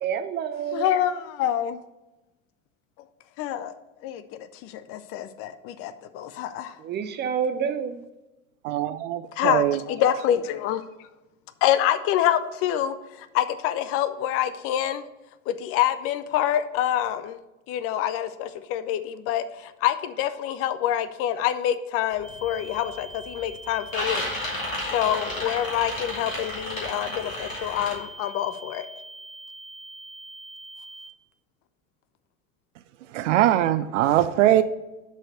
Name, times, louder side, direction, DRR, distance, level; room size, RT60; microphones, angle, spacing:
voice 1, 0.0-0.9 6.8-8.0, right 7 dB, 25° right, 10 dB, 0.6 m, -28 dB
voice 2, 0.7-1.8 3.4-3.7 4.0-6.8 9.3-10.8 11.6-15.0 15.5-17.4 17.7-24.3 24.9-28.9, left 11 dB, 35° left, 12 dB, 0.5 m, -26 dB
voice 3, 8.6-9.8 33.1-34.6, right 13 dB, 65° right, 13 dB, 0.5 m, -21 dB
sound 1, 22.2-22.5 22.9-23.4 23.7-27.9, left 1 dB, 80° left, 2.2 m, -32 dB
sound 2, 22.2-31.1, right 2 dB, 5° right, 2.9 m, -43 dB
6.4 x 4.9 x 6.5 m, 1.0 s
figure-of-eight pair, 75°, 39 cm